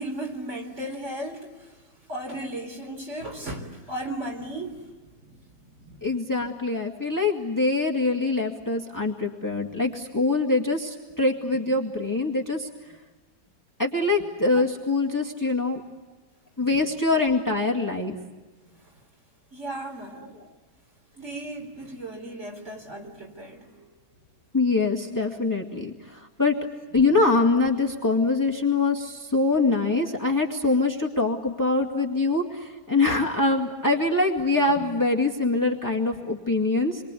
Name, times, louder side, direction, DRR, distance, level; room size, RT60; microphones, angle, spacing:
voice 1, 0.0-1.8 2.1-4.9 5.2-6.1 14.5-14.6 18.8-19.0 19.5-20.4 21.1-23.9, right 1 dB, 45° right, 2 dB, 4.3 m, -36 dB
voice 2, 6.0-12.7 13.8-15.8 16.6-18.2 20.1-20.3 24.5-26.5 26.9-37.0, left 3 dB, 10° left, 1 dB, 2.1 m, -24 dB
28.5 x 23.5 x 8.4 m, 1.3 s
omnidirectional pair, 1.7 m